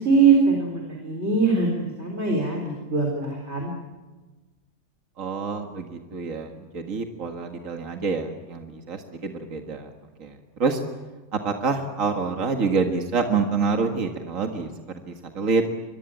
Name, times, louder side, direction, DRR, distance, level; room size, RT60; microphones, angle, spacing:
voice 1, 0.0-3.7, right 4 dB, 45° right, 1 dB, 4.3 m, -22 dB
voice 2, 5.2-9.9 10.2-10.8 11.3-14.7 15.1-15.6, right 4 dB, 60° right, 4 dB, 2.2 m, -27 dB
25.5 x 22.5 x 9.0 m, 1.2 s
omnidirectional pair, 1.5 m